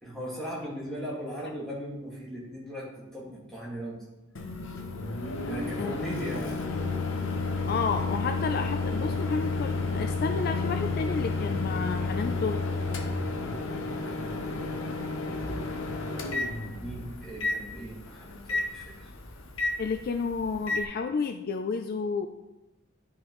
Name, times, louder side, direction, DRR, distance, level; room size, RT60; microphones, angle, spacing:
voice 1, 0.0-4.0 5.5-6.6 14.0-14.9 16.8-19.1, equal, ahead, -6 dB, 1.9 m, -38 dB
Microwave oven, 4.4-20.8, left 3 dB, 65° left, 0.8 m, -31 dB
voice 2, 7.7-12.6 19.8-22.3, left 5 dB, 45° left, 6 dB, 0.3 m, -31 dB
11.0 x 4.8 x 3.1 m, 1.0 s
head